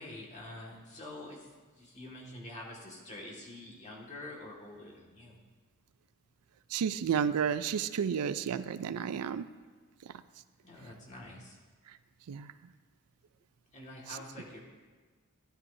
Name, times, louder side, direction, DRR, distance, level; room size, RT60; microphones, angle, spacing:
voice 1, 0.0-1.5 1.8-5.4 10.6-11.6 13.7-14.6, left 1 dB, 35° left, -2 dB, 1.9 m, -46 dB
voice 2, 6.7-9.4 12.3-12.5, right 7 dB, 80° right, 13 dB, 0.4 m, -31 dB
12.5 x 11.0 x 2.7 m, 1.4 s
head